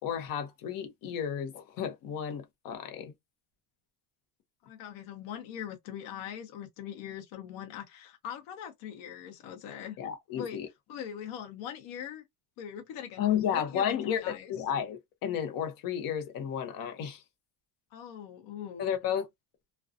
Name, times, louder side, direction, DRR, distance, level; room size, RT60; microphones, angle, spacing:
voice 1, 0.0-3.1 10.0-10.7 13.2-17.2 18.8-19.3, left 9 dB, 45° left, 0.7 m, -32 dB
voice 2, 4.6-10.0 10.3-10.6 10.9-12.2 12.6-13.2 13.5-14.5 17.9-19.0, left 9 dB, 75° left, 0.9 m, -41 dB
2.5 x 2.2 x 2.4 m
cardioid pair, 170°, 46 cm